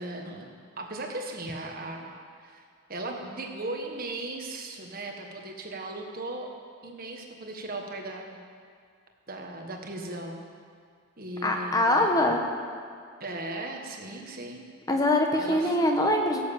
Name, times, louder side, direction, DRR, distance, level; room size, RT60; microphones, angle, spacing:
voice 1, 0.0-2.1 2.4-2.6 2.9-6.5 6.8-8.4 9.3-10.4 11.2-12.3 13.2-14.6 15.4-15.9, right 2 dB, 45° right, 2 dB, 1.5 m, -37 dB
voice 2, 11.4-12.4 14.9-16.4, left 1 dB, 15° left, 2 dB, 1.2 m, -23 dB
17.0 x 7.7 x 7.2 m, 2.1 s
head